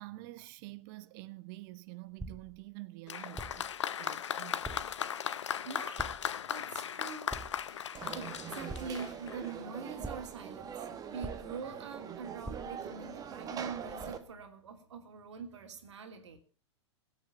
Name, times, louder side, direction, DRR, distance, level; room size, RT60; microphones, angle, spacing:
voice 1, 0.0-4.6, right 20 dB, 50° right, 1.0 m, -47 dB
sound 1, 2.2-2.7 3.4-3.8 4.6-5.0 6.0-6.4 7.3-7.7 8.7-9.2 10.0-10.5 11.2-11.8 12.4-12.9, right 2 dB, 5° right, 0.9 m, -44 dB
Applause, 3.1-9.5 10.4-10.5, left 9 dB, 75° left, 0.8 m, -37 dB
voice 2, 5.6-6.2 6.4-16.4, right 5 dB, 75° right, 2.9 m, -44 dB
Conversation / Crowd, 7.9-14.2, right 7 dB, 25° right, 1.8 m, -43 dB
17.0 x 7.3 x 7.2 m
hypercardioid pair, 105°, 15 cm